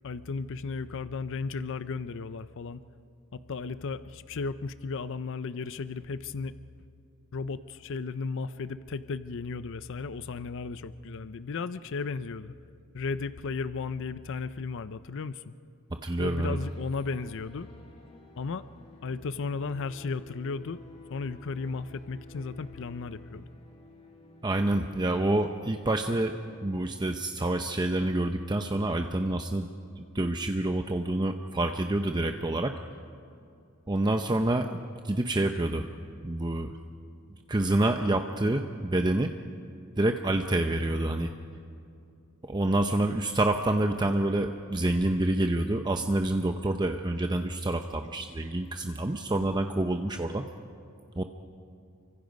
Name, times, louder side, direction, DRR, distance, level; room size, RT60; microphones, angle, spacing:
voice 1, 0.0-2.8 3.3-6.5 7.3-12.5 12.9-15.5 16.2-17.7 18.4-18.6 19.0-20.8 21.1-23.5, left 4 dB, 60° left, 14 dB, 0.5 m, -35 dB
voice 2, 15.9-16.6 24.4-26.3 26.6-29.7 30.0-32.8 33.9-34.8 35.0-35.9 36.2-36.7 37.5-39.4 40.0-41.3 42.4-50.5 51.2-51.3, right 1 dB, 20° right, 5 dB, 0.6 m, -27 dB
sound 1, 16.5-26.7, left 2 dB, 30° left, 2.3 m, -53 dB
29.0 x 24.5 x 5.3 m, 2.5 s
head